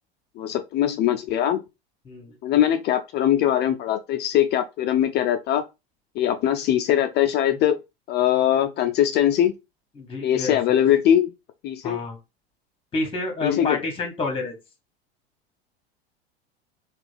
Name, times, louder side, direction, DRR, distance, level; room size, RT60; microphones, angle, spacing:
voice 1, 0.4-1.6 2.4-5.6 6.2-7.8 8.1-9.5 10.2-11.3 11.6-12.0 13.4-13.8, left 11 dB, 35° left, 0.4 m, -21 dB
voice 2, 10.0-10.8 11.8-12.2 12.9-14.6, left 3 dB, 15° left, 1.4 m, -29 dB
3.3 x 2.4 x 3.3 m
hypercardioid pair, 85°, 32 cm